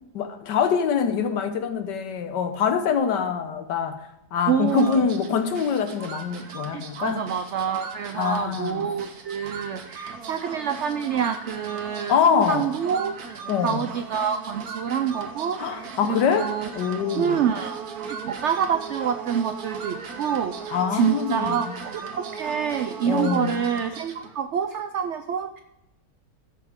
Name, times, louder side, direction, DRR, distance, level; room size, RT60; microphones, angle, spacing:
voice 1, 0.1-4.0 4.3-7.2 8.1-8.9 12.1-12.7 13.5-13.8 15.6-17.4 20.7-21.7 23.0-23.6, left 7 dB, 85° left, 8 dB, 1.6 m, -24 dB
voice 2, 4.5-5.1 6.7-13.1 13.6-16.7 17.2-25.6, right 8 dB, 85° right, 8 dB, 0.6 m, -27 dB
sound 1, 4.7-24.4, right 6 dB, 65° right, 1.4 m, -38 dB
15.5 x 6.0 x 3.6 m, 0.87 s
omnidirectional pair, 1.8 m